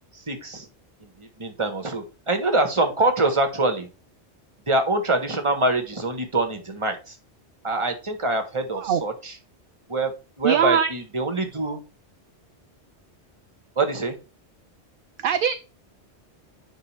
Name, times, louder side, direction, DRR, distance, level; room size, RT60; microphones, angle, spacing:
voice 1, 0.1-0.7 1.0-3.9 4.7-7.2 7.6-9.4 9.9-11.8 13.8-14.2, right 2 dB, 25° right, 1.4 m, -25 dB
voice 2, 10.4-10.9 15.2-15.5, right 8 dB, 60° right, 0.6 m, -21 dB
8.8 x 5.4 x 3.4 m
omnidirectional pair, 1.2 m